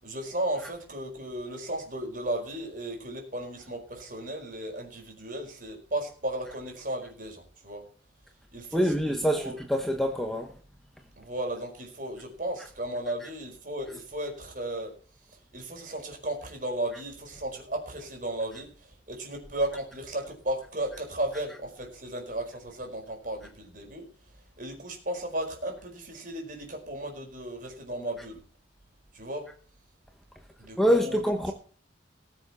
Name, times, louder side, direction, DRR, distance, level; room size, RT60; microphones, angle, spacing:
voice 1, 0.0-7.8 8.5-9.6 11.2-14.9 15.3-24.1 24.6-28.4 29.1-29.5 30.6-31.2, right 1 dB, 45° right, 4.7 m, -35 dB
voice 2, 8.7-10.5 13.2-13.3 30.8-31.5, equal, ahead, 1.2 m, -25 dB
20.0 x 7.3 x 4.3 m
head